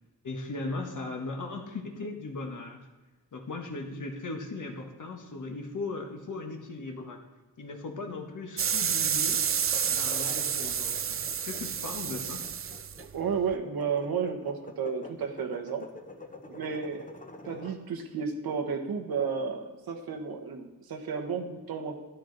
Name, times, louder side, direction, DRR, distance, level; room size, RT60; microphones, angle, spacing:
voice 1, 0.2-2.9 3.3-7.2 7.6-9.4 9.9-11.2 11.4-12.4, left 3 dB, 55° left, 2 dB, 1.3 m, -38 dB
sound 1, 8.6-13.5, right 8 dB, 40° right, 0.4 m, -30 dB
sound 2, 9.6-17.8, left 3 dB, 20° left, 0.9 m, -47 dB
voice 2, 13.1-15.9 16.5-17.1 17.4-22.0, right 6 dB, 85° right, 3 dB, 1.2 m, -32 dB
12.5 x 10.0 x 4.0 m, 1.2 s
wide cardioid pair, 125°, 36 cm